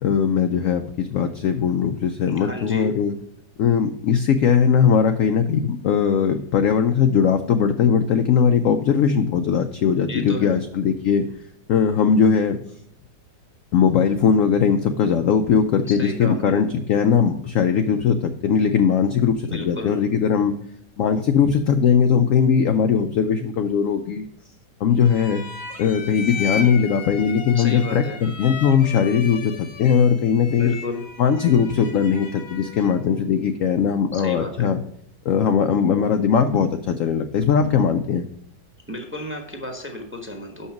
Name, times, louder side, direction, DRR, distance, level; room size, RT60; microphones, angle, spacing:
voice 1, 0.0-3.1 3.6-11.3 11.7-12.6 13.7-20.5 21.0-24.3 24.8-25.4 25.8-30.7 31.2-34.8 35.3-38.3, left 7 dB, 70° left, 8 dB, 0.8 m, -19 dB
voice 2, 2.4-2.9 10.1-10.6 15.9-16.6 19.4-20.0 27.5-28.2 30.6-31.0 34.1-34.7 38.9-40.7, left 2 dB, 10° right, 3 dB, 0.9 m, -33 dB
sound 1, 25.0-33.1, left 5 dB, 45° left, 1.0 m, -36 dB
6.5 x 5.6 x 5.8 m, 0.73 s
omnidirectional pair, 1.8 m